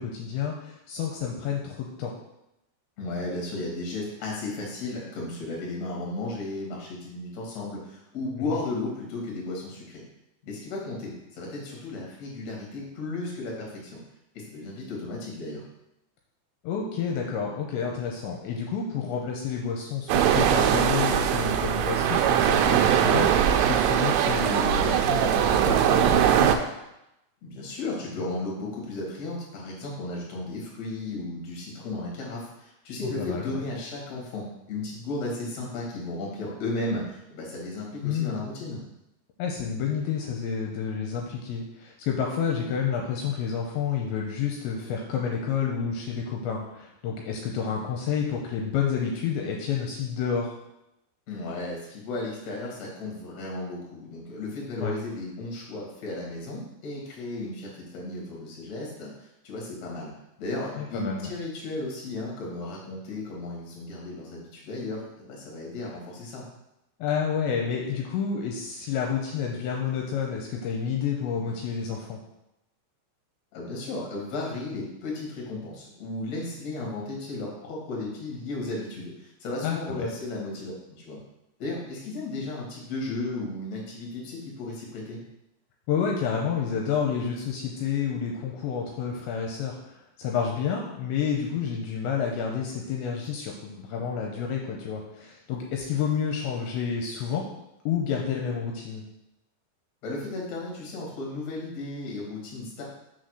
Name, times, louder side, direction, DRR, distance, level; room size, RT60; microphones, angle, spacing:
voice 1, 0.0-2.1 16.6-26.6 33.0-33.6 38.0-38.5 39.4-50.6 54.8-55.0 60.8-61.3 67.0-72.2 79.6-80.1 85.9-97.4 97.9-99.0, left 7 dB, 80° left, 0 dB, 2.8 m, -29 dB
voice 2, 3.0-10.0 10.4-14.0 14.3-15.6 27.4-38.8 51.3-60.1 60.4-66.4 73.5-80.7 81.0-81.2 81.6-85.2 100.0-102.8, left 2 dB, 45° left, -3 dB, 2.4 m, -34 dB
sound 1, 20.1-26.6, right 9 dB, 90° right, 3.0 m, -21 dB
6.4 x 4.2 x 6.3 m, 0.88 s
omnidirectional pair, 5.4 m